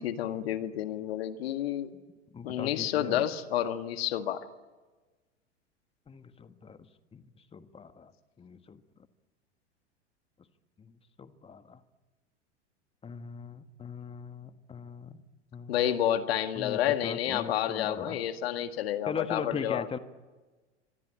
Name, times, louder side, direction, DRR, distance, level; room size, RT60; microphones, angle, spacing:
voice 1, 0.0-1.9 2.4-4.5 15.7-19.9, left 11 dB, 55° left, 10 dB, 1.9 m, -30 dB
voice 2, 2.3-3.3 6.1-8.1 8.4-8.8 10.8-11.8 13.0-15.2 15.5-15.9 16.5-18.2 19.1-20.0, left 5 dB, 15° left, 11 dB, 1.6 m, -40 dB
27.0 x 25.0 x 8.7 m, 1.2 s
figure-of-eight pair, 85°, 36 cm